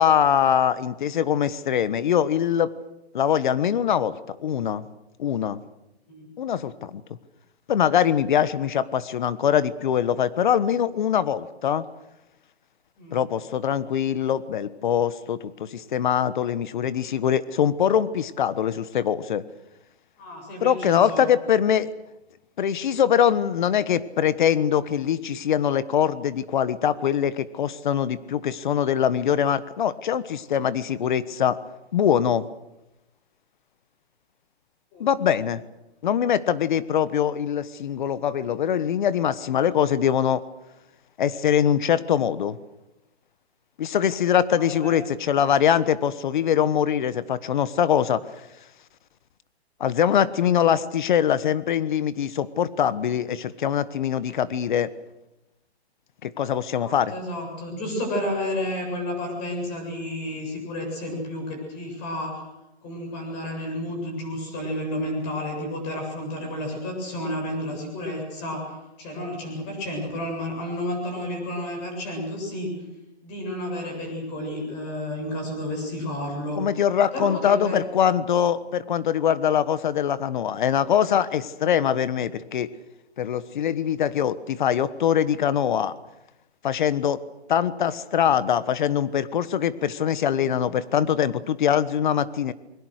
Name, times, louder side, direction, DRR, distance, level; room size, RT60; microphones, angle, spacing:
voice 1, 0.0-2.7 3.1-4.9 5.2-5.6 6.4-7.0 7.7-11.8 13.1-19.4 20.6-21.9 22.6-31.6 31.9-32.5 35.0-35.6 36.0-40.4 41.2-42.6 43.8-48.2 49.8-54.9 56.2-57.1 76.6-82.7 83.2-85.9 86.6-87.2 87.5-92.5, left 9 dB, 45° left, 16 dB, 1.2 m, -23 dB
voice 2, 20.2-21.2 34.9-35.1 44.5-45.0 56.7-62.4 62.8-72.7 73.2-76.6 77.1-77.8, left 1 dB, 25° left, 2 dB, 7.6 m, -31 dB
29.5 x 22.5 x 6.5 m, 0.93 s
hypercardioid pair, 160°, 33 cm